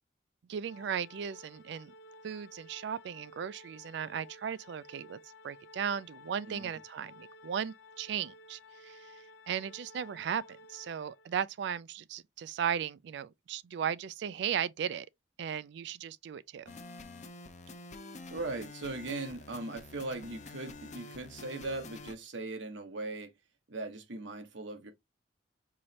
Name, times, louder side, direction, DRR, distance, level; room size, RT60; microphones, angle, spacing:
voice 1, 0.5-1.9 2.2-5.2 5.4-15.1 15.4-16.7, right 8 dB, 65° right, 0.3 m, -36 dB
Organ, 0.6-11.5, left 2 dB, 85° left, 0.7 m, -54 dB
sound 1, 16.7-22.1, left 3 dB, 40° left, 0.6 m, -48 dB
voice 2, 18.3-23.3 23.7-24.9, right 2 dB, 85° right, 1.0 m, -39 dB
4.7 x 3.0 x 2.8 m
head